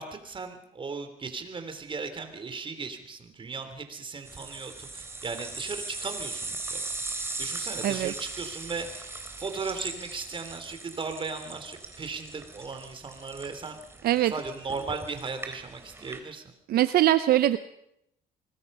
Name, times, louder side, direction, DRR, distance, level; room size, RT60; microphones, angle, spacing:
voice 1, 0.0-6.8 7.4-13.8 14.3-16.4, right 4 dB, 30° right, 7 dB, 3.4 m, -37 dB
sound 1, 4.2-16.2, right 3 dB, 15° right, 3.4 m, -39 dB
voice 2, 7.8-8.1 14.0-14.3 16.7-17.6, right 13 dB, 65° right, 12 dB, 0.7 m, -22 dB
25.0 x 20.5 x 5.6 m, 0.79 s
cardioid pair, 110°, 17 cm